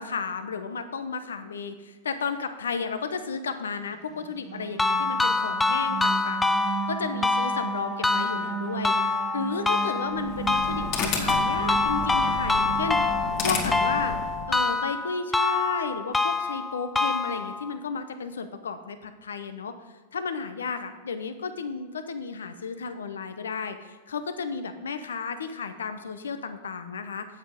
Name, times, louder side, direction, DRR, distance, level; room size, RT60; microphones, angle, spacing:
voice 1, 0.0-13.0 13.4-14.2 14.5-19.7 20.1-27.3, left 5 dB, 80° left, 9 dB, 0.8 m, -33 dB
sound 1, 4.1-14.6, right 9 dB, 30° right, 0.4 m, -37 dB
sound 2, 4.8-17.8, left 3 dB, 10° left, 0.7 m, -26 dB
sound 3, 10.1-14.6, left 4 dB, 50° left, 2.0 m, -32 dB
8.2 x 7.7 x 5.1 m, 1.3 s
hypercardioid pair, 100°, 0 cm